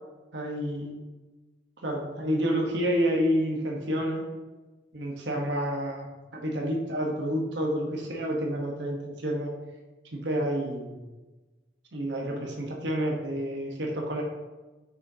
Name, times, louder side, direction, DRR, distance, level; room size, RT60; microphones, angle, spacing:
voice 1, 0.3-1.0 1.8-4.3 4.9-9.5 10.1-11.0 11.9-14.2, equal, 75° right, 0 dB, 1.1 m, -29 dB
7.1 x 6.2 x 2.8 m, 1.2 s
head